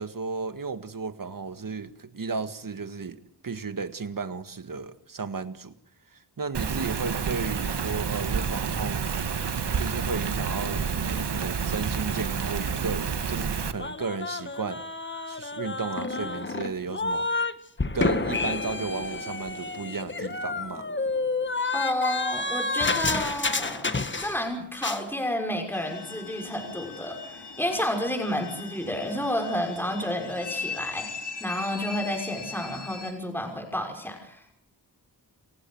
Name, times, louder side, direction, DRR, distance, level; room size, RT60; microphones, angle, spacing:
voice 1, 0.0-5.7 6.1-9.3 9.8-14.8 15.3-17.4 17.9-20.9, right 4 dB, 55° right, 10 dB, 1.8 m, -34 dB
Rain, 6.5-13.7, right 6 dB, 85° right, 1.7 m, -29 dB
sound 1, 13.8-17.5 17.8-24.5 24.7-25.0, left 3 dB, 30° left, 1.4 m, -29 dB
voice 2, 21.7-23.9 24.2-34.6, left 1 dB, 5° left, 2 dB, 5.8 m, -30 dB
sound 2, 25.7-33.1, left 5 dB, 75° left, 4.2 m, -39 dB
29.5 x 16.0 x 7.8 m, 0.65 s
wide cardioid pair, 100°, 40 cm